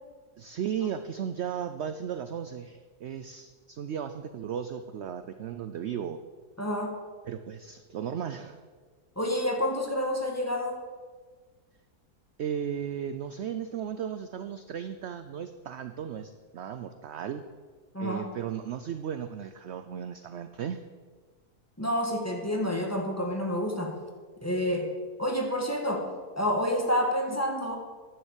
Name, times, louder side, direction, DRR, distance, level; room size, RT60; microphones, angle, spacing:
voice 1, 0.4-6.2 7.3-8.6 12.4-17.4 18.0-20.8, right 8 dB, 65° right, 10 dB, 0.6 m, -35 dB
voice 2, 6.6-7.0 9.1-10.8 17.9-18.3 21.8-24.0 24.4-24.9 25.2-26.1 26.4-27.8, equal, 10° left, 1 dB, 1.6 m, -28 dB
10.5 x 7.9 x 8.1 m, 1.5 s
omnidirectional pair, 1.7 m